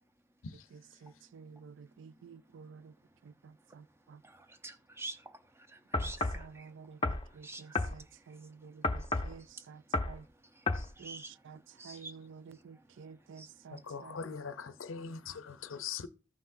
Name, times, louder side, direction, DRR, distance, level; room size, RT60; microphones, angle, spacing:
voice 1, 0.7-2.9 3.2-4.2 6.0-10.3 11.0-14.2, right 6 dB, 60° right, 0.3 m, -52 dB
voice 2, 4.2-6.7 7.4-7.8 10.5-11.3 11.8-12.1 13.4-13.5, right 2 dB, 10° right, 0.7 m, -47 dB
sound 1, 5.9-6.4 7.0-7.3 7.7-8.0 8.8-9.4 9.9-10.2 10.7-10.9, left 2 dB, 25° left, 0.6 m, -31 dB
voice 3, 13.7-16.1, left 6 dB, 75° left, 0.6 m, -41 dB
14.5 x 5.7 x 2.6 m
head